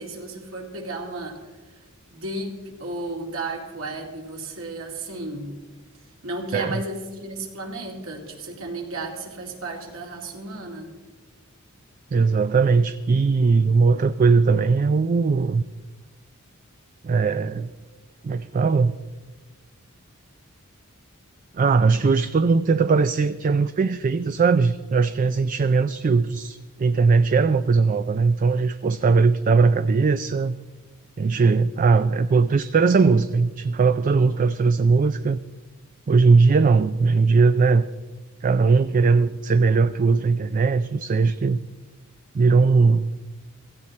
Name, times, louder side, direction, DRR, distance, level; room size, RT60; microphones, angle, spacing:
voice 1, 0.0-1.4 2.1-5.6 6.2-10.9, right 2 dB, 65° right, 1 dB, 2.5 m, -33 dB
voice 2, 12.1-15.6 17.0-17.7 18.2-18.9 21.5-30.5 31.2-35.4 36.1-37.9 38.4-41.6 42.3-43.1, right 4 dB, 40° right, 12 dB, 0.3 m, -19 dB
16.5 x 14.5 x 4.3 m, 1.3 s
head